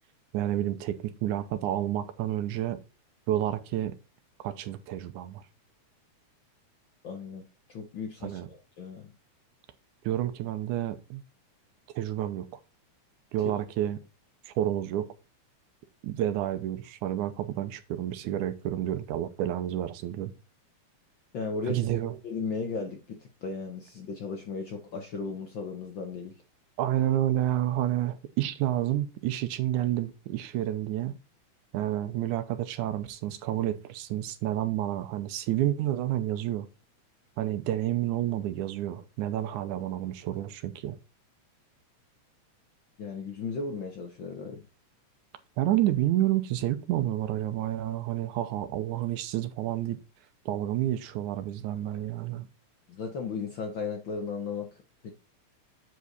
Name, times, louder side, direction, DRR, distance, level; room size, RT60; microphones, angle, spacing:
voice 1, 0.3-2.8 3.3-3.9 4.4-5.4 8.2-8.5 10.0-11.2 12.0-12.6 13.3-14.0 14.5-15.1 16.0-20.3 21.6-22.2 26.8-31.2 31.7-36.7 37.4-41.0 45.6-50.0 50.5-52.5, right 13 dB, 85° right, 2.2 m, -29 dB
voice 2, 7.0-7.4 7.7-9.1 21.3-21.8 22.2-26.4 43.0-44.6 52.9-55.1, left 5 dB, 65° left, 1.2 m, -36 dB
8.2 x 5.1 x 4.0 m
omnidirectional pair, 3.4 m